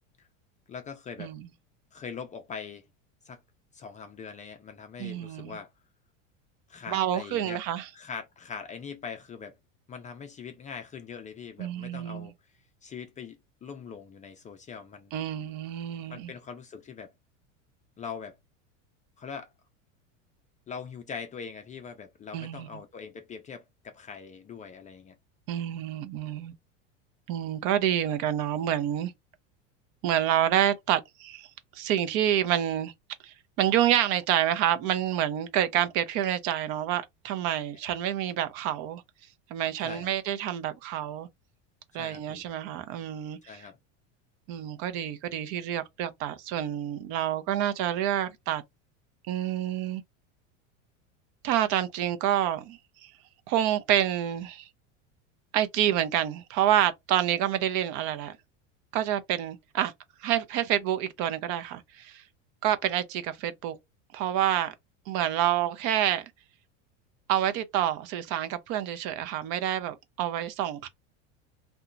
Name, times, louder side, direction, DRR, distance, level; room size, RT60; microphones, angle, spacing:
voice 1, 0.7-1.3 1.9-2.8 3.2-3.4 3.7-5.7 6.7-7.6 7.9-9.5 9.9-12.3 12.8-15.1 16.1-17.1 18.0-18.4 19.2-19.5 20.7-25.1 39.8-40.1 41.9-42.5 43.5-43.8, left 6 dB, 20° left, 0.4 m, -42 dB
voice 2, 5.0-5.6 6.9-7.9 11.6-12.3 15.1-16.3 22.3-22.7 25.5-26.5 27.3-29.1 30.0-31.5 31.7-32.9 33.2-39.0 39.5-41.3 41.9-43.6 44.5-48.6 49.3-50.0 51.4-53.1 53.5-54.7 55.5-58.4 58.9-59.9 60.2-62.2 62.6-63.8 64.1-64.7 65.1-66.3 67.3-70.9, right 11 dB, 55° right, 0.6 m, -28 dB
2.8 x 2.3 x 2.5 m
supercardioid pair, 115°, 37 cm